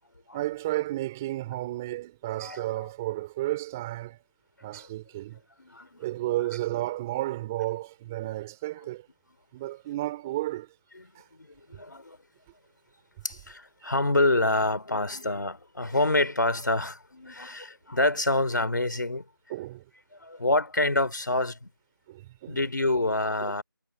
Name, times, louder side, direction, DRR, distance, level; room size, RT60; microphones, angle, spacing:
voice 1, 0.3-4.2 4.6-5.4 6.0-9.1 9.5-10.7 11.1-11.2 13.8-13.9 19.5-19.9 22.1-22.6 23.4-23.6, right 16 dB, 5° right, 3.2 m, -32 dB
voice 2, 2.4-2.9 4.7-4.9 5.6-6.0 11.4-12.2 13.2-19.2 20.1-21.7 22.5-23.6, left 2 dB, 55° left, 3.4 m, -27 dB
figure-of-eight pair, 175°, 12 cm